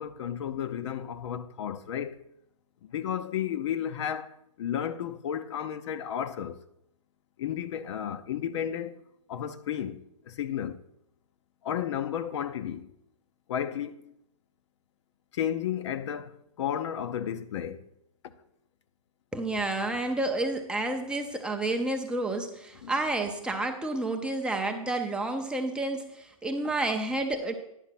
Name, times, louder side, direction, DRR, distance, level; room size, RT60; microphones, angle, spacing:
voice 1, 0.0-2.2 2.9-6.6 7.4-8.9 9.3-10.8 11.6-12.9 13.5-14.1 15.3-17.8 22.8-22.9, left 9 dB, 55° left, 0.6 m, -33 dB
voice 2, 19.3-27.5, right 2 dB, 5° right, 0.5 m, -30 dB
10.0 x 5.1 x 5.7 m
hypercardioid pair, 140°, 18 cm